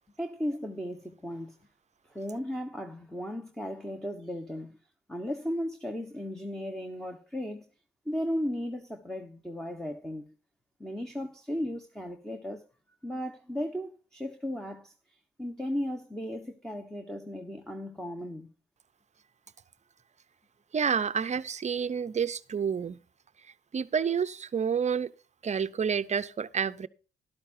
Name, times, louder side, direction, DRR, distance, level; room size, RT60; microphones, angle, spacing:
voice 1, 0.2-1.6 2.0-4.8 5.1-7.7 8.0-10.3 10.8-12.6 13.0-18.5, equal, 5° left, 1.2 m, -36 dB
voice 2, 20.7-23.0 23.7-25.1 25.4-26.9, right 6 dB, 35° right, 0.7 m, -29 dB
12.5 x 12.0 x 2.7 m
cardioid pair, 90°, 20 cm